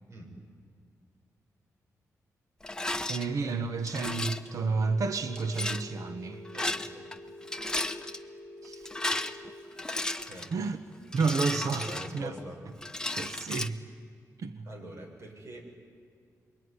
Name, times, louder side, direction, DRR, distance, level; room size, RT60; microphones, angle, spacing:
Rattle, 2.6-3.3 3.9-4.5 5.4-5.8 6.5-7.2 7.4-8.2 8.7-10.5 11.1-12.4 12.8-13.7, left 2 dB, 10° left, 1.1 m, -34 dB
voice 1, 3.1-6.4 8.6-8.9 10.5-10.8 11.1-12.3 13.2-13.8 14.4-14.7, right 4 dB, 65° right, 9 dB, 1.4 m, -30 dB
Telephone, 4.6-9.6, left 1 dB, 15° right, 4.1 m, -48 dB
voice 2, 6.5-7.0 10.2-10.6 11.8-12.6 14.6-15.6, right 1 dB, 50° right, 0 dB, 7.2 m, -44 dB
26.5 x 22.5 x 9.9 m, 2.2 s
cardioid pair, 110°, 6 cm